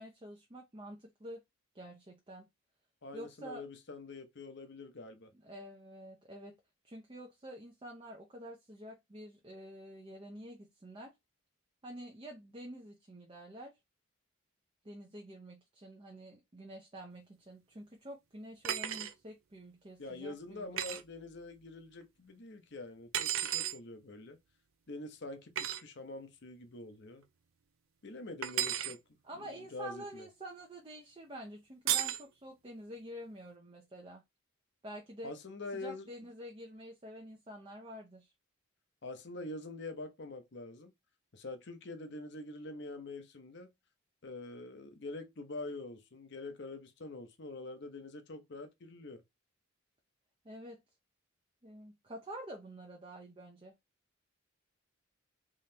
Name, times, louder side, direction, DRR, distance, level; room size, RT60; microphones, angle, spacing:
voice 1, 0.0-1.4 1.7-2.5 3.1-3.6 5.4-6.6 6.8-11.1 11.8-13.7 14.8-21.0 29.2-34.2 34.8-35.3 35.7-38.3 50.4-50.8 51.6-53.7, right 1 dB, 25° right, 0.7 m, -48 dB
voice 2, 3.0-5.3 20.0-24.4 24.9-27.2 28.0-29.0 29.3-30.3 35.2-36.1 39.0-40.9 41.3-43.7 44.2-49.2, left 2 dB, 55° left, 0.8 m, -45 dB
sound 1, 18.6-19.1 20.8-21.0 23.1-23.8 25.6-25.8 28.4-28.9 31.9-32.2, right 11 dB, 70° right, 0.5 m, -33 dB
3.7 x 3.1 x 2.7 m
head